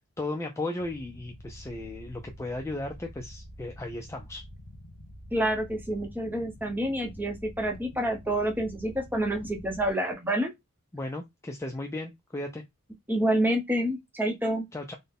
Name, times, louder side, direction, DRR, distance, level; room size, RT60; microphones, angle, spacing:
voice 1, 0.2-4.4 10.9-12.6 14.7-14.9, left 2 dB, 15° left, 0.3 m, -35 dB
sound 1, 0.8-9.9, equal, 70° left, 1.1 m, -47 dB
voice 2, 5.3-10.5 13.1-14.7, right 1 dB, 10° right, 0.7 m, -28 dB
3.9 x 2.1 x 3.5 m
head